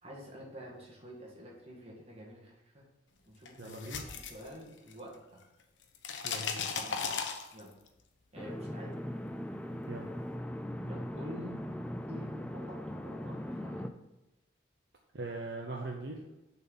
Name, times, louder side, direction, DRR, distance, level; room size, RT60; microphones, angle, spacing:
voice 1, 0.0-2.8 3.3-3.8 4.1-5.4 6.7-7.2 7.5-7.7 8.3-9.0 10.9-11.6 12.1-13.9, equal, 30° right, -3 dB, 1.9 m, -48 dB
sound 1, 3.4-5.1 5.4-7.9, left 5 dB, 75° left, 0.8 m, -37 dB
voice 2, 3.6-4.0 6.2-6.7 9.9-10.1 15.1-16.2, right 2 dB, 60° right, 0 dB, 0.8 m, -40 dB
sound 2, 8.4-13.9, equal, 5° left, 0.3 m, -39 dB
6.8 x 4.5 x 5.6 m, 0.96 s
head